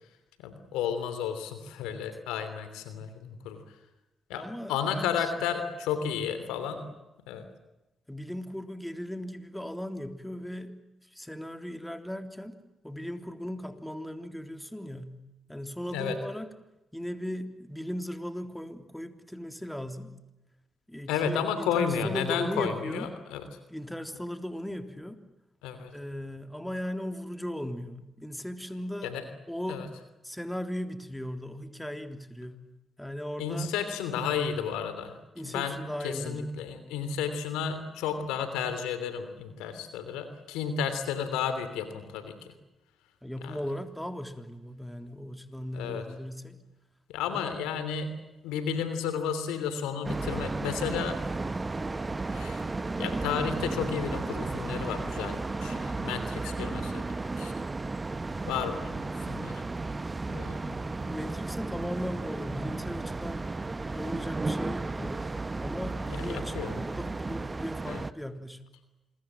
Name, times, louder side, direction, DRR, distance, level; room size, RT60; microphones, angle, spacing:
voice 1, 0.4-3.6 4.3-6.8 7.3-7.4 15.9-16.1 21.1-23.4 25.6-25.9 29.0-29.2 29.7-29.9 33.4-35.2 35.5-35.8 36.0-42.5 43.4-43.6 45.7-46.0 47.1-48.1 48.4-51.2 52.3-52.7 53.0-57.0 57.4-57.5 58.4-59.6 60.3-60.8 66.3-66.8 67.9-68.0, left 7 dB, 85° left, 10 dB, 3.1 m, -32 dB
voice 2, 4.3-5.3 6.8-6.9 8.1-10.7 11.0-12.6 12.8-15.2 15.5-16.5 16.9-20.1 20.9-23.1 23.7-25.2 25.9-29.1 29.5-29.9 30.2-32.6 33.0-33.7 35.3-36.7 43.2-46.6 47.3-47.5 48.8-48.9 61.1-63.5 63.9-65.2 65.6-68.6, equal, 5° left, 7 dB, 3.5 m, -37 dB
sound 1, 50.0-68.1, right 3 dB, 30° right, 1.2 m, -34 dB
27.0 x 22.5 x 7.6 m, 0.98 s
hypercardioid pair, 45°, 0 cm